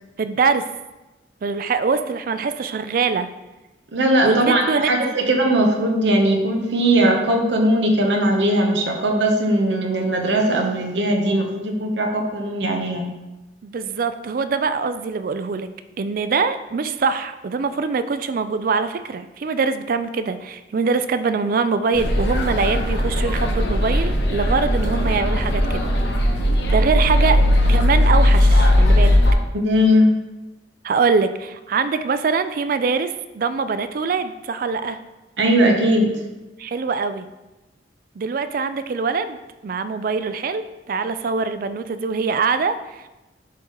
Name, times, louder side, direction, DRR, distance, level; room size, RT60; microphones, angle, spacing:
voice 1, 0.2-0.7 1.4-3.3 4.2-5.1 13.6-15.7 16.0-25.9 26.7-27.4 27.7-29.2 30.8-35.0 36.6-37.3 38.2-39.4 39.6-43.1, right 5 dB, 50° right, 11 dB, 0.4 m, -23 dB
voice 2, 3.9-13.1 29.5-30.1 35.4-36.1, right 1 dB, 80° right, 2 dB, 1.0 m, -19 dB
sound 1, 21.9-29.3, left 1 dB, 65° left, 0.9 m, -18 dB
10.5 x 3.7 x 3.1 m, 1.0 s
head